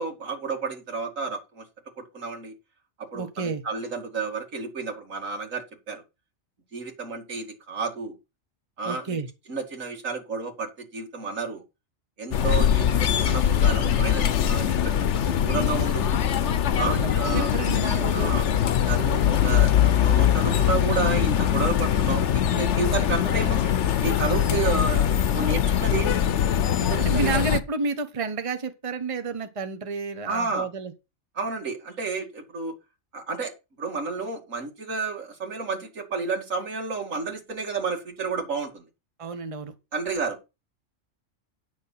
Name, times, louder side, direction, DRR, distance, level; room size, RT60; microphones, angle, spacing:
voice 1, 0.0-1.7 2.1-2.5 3.0-6.0 6.7-8.2 8.8-9.2 9.5-11.6 12.2-14.7 15.4-16.1 16.8-17.5 18.1-18.4 18.9-23.7 24.0-25.0 25.3-26.3 26.8-27.3 30.3-30.7 31.4-32.7 33.1-33.5 33.8-38.8 39.9-40.4, right 4 dB, 85° right, 2.7 m, -31 dB
voice 2, 3.1-3.6 8.8-9.3 12.4-12.5 16.7-18.3 24.5-24.6 27.0-30.9 39.2-39.7, right 4 dB, 30° right, 1.0 m, -30 dB
sound 1, 12.3-27.6, left 9 dB, 65° left, 1.1 m, -22 dB
9.4 x 6.4 x 5.6 m
omnidirectional pair, 1.4 m